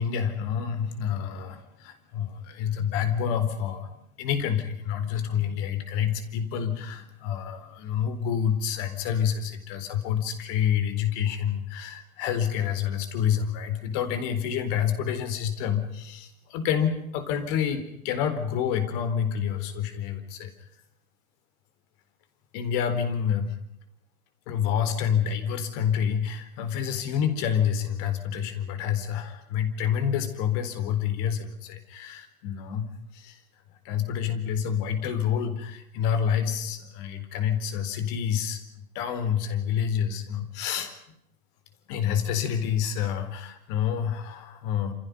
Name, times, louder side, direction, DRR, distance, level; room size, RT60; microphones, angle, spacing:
voice 1, 0.0-3.9 4.2-20.5 22.5-23.6 24.5-33.4 33.8-40.9 41.9-44.9, left 8 dB, 40° left, 10 dB, 4.3 m, -28 dB
28.5 x 27.5 x 5.4 m, 0.79 s
figure-of-eight pair, 110°, 44 cm